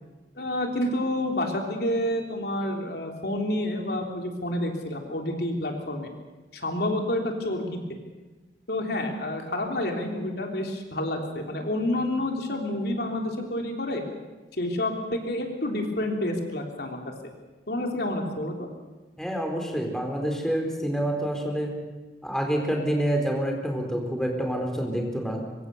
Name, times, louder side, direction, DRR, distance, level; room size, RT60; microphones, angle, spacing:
voice 1, 0.4-6.1 6.5-8.0 8.7-14.0 14.6-17.0 17.7-18.7, left 1 dB, 65° left, 2 dB, 3.4 m, -29 dB
voice 2, 19.2-21.7 22.2-25.4, equal, 5° left, 2 dB, 4.2 m, -27 dB
24.5 x 24.0 x 7.0 m, 1.2 s
head